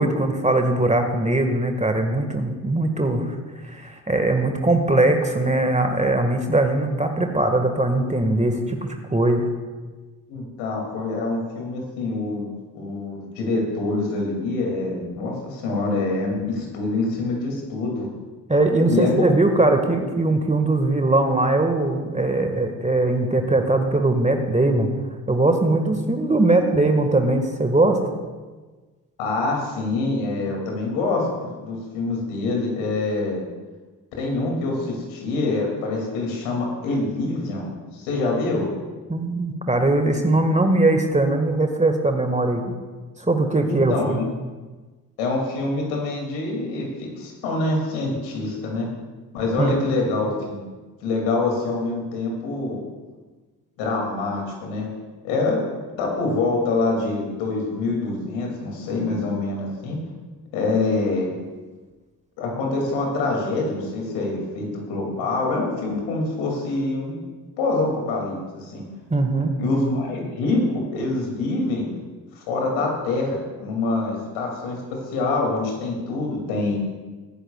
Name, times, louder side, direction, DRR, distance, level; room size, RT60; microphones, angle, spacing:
voice 1, 0.0-3.3 3.6-8.8 9.1-9.4 18.5-24.9 25.3-28.0 39.1-42.6 43.2-44.2 49.6-49.7 69.1-69.5, right 2 dB, 15° right, 4 dB, 1.6 m, -20 dB
voice 2, 10.3-18.1 18.9-19.3 26.4-26.7 29.2-33.4 34.2-38.7 43.6-44.2 45.2-48.9 49.3-50.6 51.0-52.8 53.8-54.9 55.2-55.6 56.0-60.0 60.5-61.3 62.4-67.2 67.6-68.8 69.6-71.9 72.4-76.8, left 3 dB, 70° left, 0 dB, 2.6 m, -25 dB
21.0 x 9.9 x 2.3 m, 1.3 s
figure-of-eight pair, 40°, 48 cm